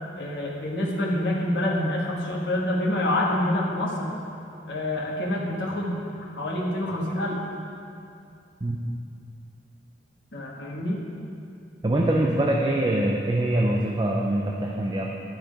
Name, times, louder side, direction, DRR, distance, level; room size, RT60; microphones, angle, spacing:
voice 1, 0.2-4.1 4.7-7.4 10.3-11.0, left 1 dB, 65° left, -3 dB, 1.3 m, -27 dB
voice 2, 11.8-15.1, right 1 dB, 20° right, 0 dB, 0.4 m, -24 dB
12.0 x 4.5 x 5.0 m, 2.6 s
head